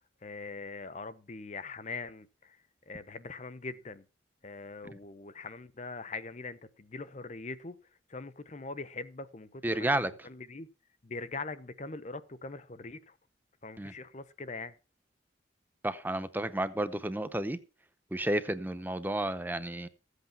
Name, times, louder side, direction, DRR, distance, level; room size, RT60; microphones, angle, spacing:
voice 1, 0.2-2.6 2.9-4.0 4.4-7.8 8.1-10.7 11.0-13.2 13.6-14.7, left 3 dB, 35° left, 0.8 m, -42 dB
voice 2, 9.6-10.1 13.8-13.9 15.8-17.6 18.1-19.9, right 1 dB, 10° right, 0.7 m, -31 dB
14.5 x 8.2 x 5.9 m
head